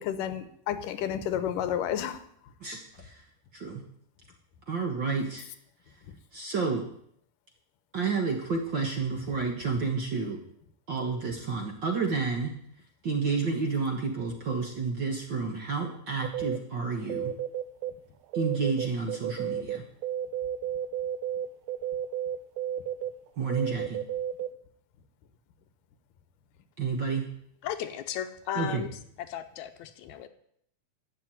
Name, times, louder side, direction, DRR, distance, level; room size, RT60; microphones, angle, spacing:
voice 1, 0.0-2.2, left 9 dB, 90° left, 11 dB, 2.6 m, -31 dB
voice 2, 2.6-3.2 3.5-3.8 4.7-5.5 6.3-6.9 7.9-10.4 10.9-12.6 13.0-17.3 18.3-19.8 23.4-24.0 26.8-27.3 28.5-28.8, right 4 dB, 50° right, 2 dB, 1.4 m, -30 dB
sound 1, 16.2-16.6 17.1-17.9 18.2-24.5, right 10 dB, 80° right, 2.2 m, -32 dB
voice 3, 27.6-28.9 29.2-30.3, left 10 dB, 75° left, 9 dB, 2.0 m, -35 dB
12.0 x 7.9 x 9.0 m, 0.68 s
omnidirectional pair, 3.7 m